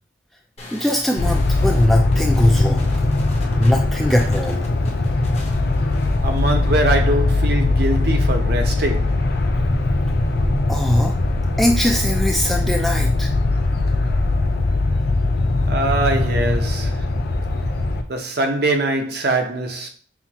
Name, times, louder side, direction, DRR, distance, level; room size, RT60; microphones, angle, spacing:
sound 1, 0.6-6.7, left 1 dB, 35° left, 0.9 m, -38 dB
voice 1, 0.7-2.9 3.6-4.6 10.7-11.2 11.6-13.3, left 1 dB, ahead, 0.4 m, -20 dB
sound 2, 1.2-18.0, left 2 dB, 55° left, 0.5 m, -20 dB
voice 2, 6.2-9.2 15.7-17.0 18.1-19.9, right 2 dB, 55° right, 0.7 m, -22 dB
5.7 x 2.5 x 2.9 m
head